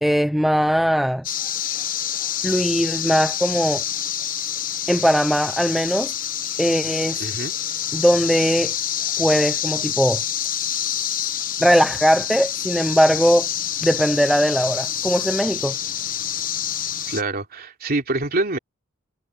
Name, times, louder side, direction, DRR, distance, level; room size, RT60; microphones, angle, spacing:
voice 1, 0.0-1.4 2.4-3.8 4.9-6.1 6.6-7.3 7.9-8.7 9.2-10.2 11.6-13.5 13.8-15.7, equal, ahead, 0.5 m, -20 dB
sound 1, 1.2-17.2, left 10 dB, 40° left, 1.2 m, -27 dB
voice 2, 7.2-7.5 17.1-18.6, right 2 dB, 45° right, 3.2 m, -25 dB
head